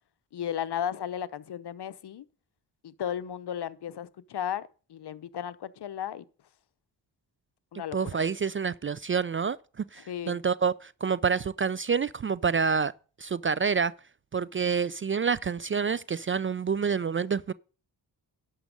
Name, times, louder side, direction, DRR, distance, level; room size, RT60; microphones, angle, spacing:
voice 1, 0.3-2.2 2.8-4.6 4.9-6.2 7.7-8.0 10.1-10.4, left 9 dB, 60° left, 0.8 m, -34 dB
voice 2, 7.9-12.9 13.2-13.9 14.3-17.5, right 6 dB, 30° right, 0.4 m, -28 dB
11.5 x 6.3 x 5.2 m
supercardioid pair, 45°, 45 cm